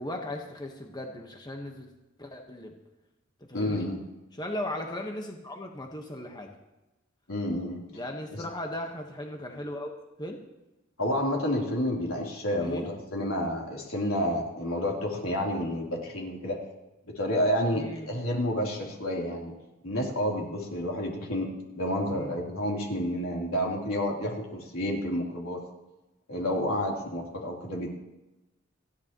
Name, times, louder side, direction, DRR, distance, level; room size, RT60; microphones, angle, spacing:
voice 1, 0.0-1.9 2.2-2.7 3.5-3.9 4.3-6.5 7.9-9.9 10.2-10.4 12.6-12.9 17.7-18.2 22.1-22.4, left 1 dB, 20° left, 2 dB, 1.3 m, -37 dB
voice 2, 3.5-4.0 7.3-7.8 8.3-8.4 11.0-16.6 17.1-19.5 19.8-21.5 21.7-25.6 26.3-27.9, equal, 90° left, -2 dB, 3.6 m, -30 dB
29.0 x 10.5 x 3.1 m, 0.99 s
head